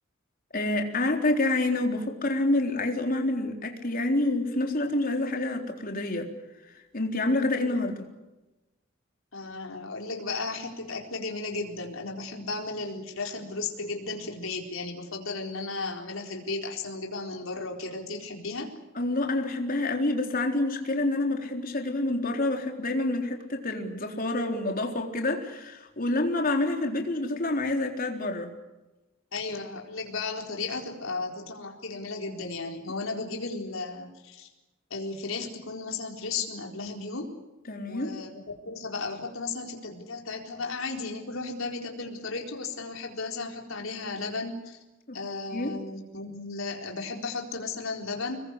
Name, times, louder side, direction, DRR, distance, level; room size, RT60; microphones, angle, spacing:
voice 1, 0.5-6.3 6.7-8.1 19.0-28.5 37.7-38.1 45.1-45.2 45.5-45.7, left 2 dB, 45° left, 3 dB, 3.9 m, -28 dB
voice 2, 9.3-18.7 29.3-34.5 34.9-37.3 37.8-44.8 45.1-48.4, left 3 dB, 75° left, 2 dB, 4.3 m, -35 dB
26.5 x 21.5 x 8.3 m, 1.1 s
head